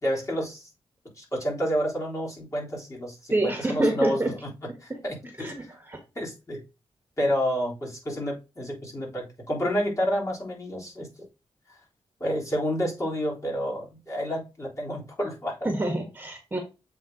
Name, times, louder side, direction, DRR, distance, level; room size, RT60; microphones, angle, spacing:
voice 1, 0.0-0.7 1.2-5.7 6.2-6.6 7.2-11.1 12.2-15.7, equal, 30° left, -3 dB, 3.6 m, -29 dB
voice 2, 3.3-4.3 5.4-6.0 15.6-16.6, right 1 dB, 20° right, 3 dB, 1.5 m, -27 dB
7.6 x 3.8 x 3.8 m, 0.28 s
wide cardioid pair, 110°, 11 cm